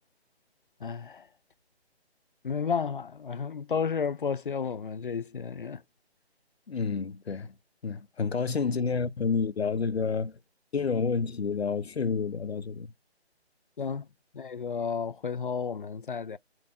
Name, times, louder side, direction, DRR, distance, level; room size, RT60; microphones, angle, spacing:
voice 1, 0.8-1.3 2.4-5.8 13.8-14.1 14.3-16.4, left 6 dB, 50° left, 0.4 m, -32 dB
voice 2, 6.7-7.5 7.8-10.4 10.7-12.9, left 5 dB, 70° left, 0.9 m, -29 dB
5.9 x 4.5 x 4.6 m
hypercardioid pair, 170°, 33 cm